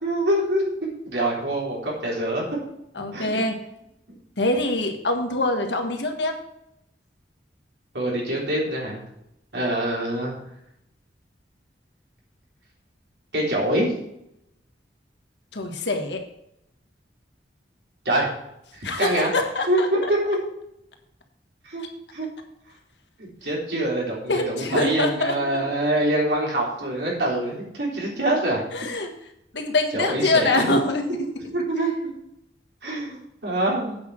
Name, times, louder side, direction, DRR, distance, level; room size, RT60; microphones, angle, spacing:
voice 1, 0.0-2.4 3.1-3.4 4.1-4.2 7.9-9.0 9.5-10.3 13.3-13.9 18.1-18.3 18.7-19.3 19.7-20.4 21.6-21.8 22.1-22.3 23.2-28.6 29.9-30.8 31.1-32.1 32.8-34.0, right 1 dB, 65° right, -3 dB, 3.8 m, -25 dB
voice 2, 2.9-3.5 4.4-6.4 15.5-16.2 18.8-19.9 24.3-25.3 28.7-29.1 29.5-31.2, left 2 dB, 80° left, 4 dB, 1.5 m, -24 dB
8.4 x 6.4 x 6.0 m, 0.79 s
head